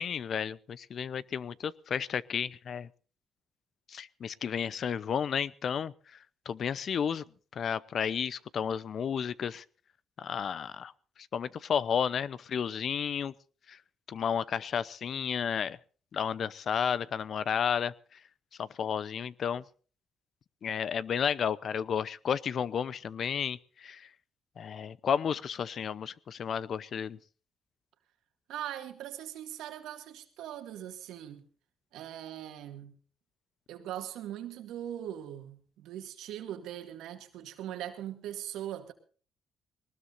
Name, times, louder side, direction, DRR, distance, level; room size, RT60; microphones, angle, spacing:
voice 1, 0.0-2.9 3.9-5.9 6.5-7.2 7.5-9.6 10.2-10.9 11.3-13.3 13.7-13.8 14.1-15.8 16.1-17.9 18.6-19.6 20.6-24.1 24.6-27.2, left 7 dB, 55° left, 0.7 m, -32 dB
voice 2, 28.5-31.4 31.9-33.0 33.7-38.9, right 11 dB, 85° right, 2.2 m, -40 dB
21.5 x 19.5 x 2.6 m
cardioid pair, 90°, 0 cm